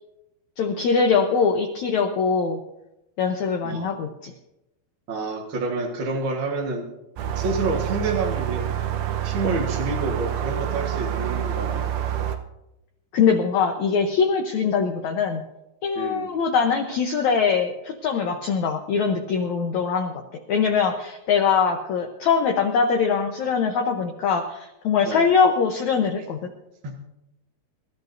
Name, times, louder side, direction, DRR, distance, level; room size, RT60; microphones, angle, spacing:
voice 1, 0.6-2.6 3.2-4.3 13.1-15.4 15.8-20.2 20.5-26.5, left 6 dB, 75° left, 4 dB, 1.7 m, -22 dB
voice 2, 5.1-6.9 7.3-8.8 9.2-11.9 15.9-16.3 25.0-25.3 26.8-27.0, right 3 dB, 55° right, -1 dB, 1.3 m, -28 dB
sound 1, 7.2-12.4, right 10 dB, 80° right, 2.8 m, -27 dB
25.0 x 13.5 x 2.7 m, 0.92 s
omnidirectional pair, 4.6 m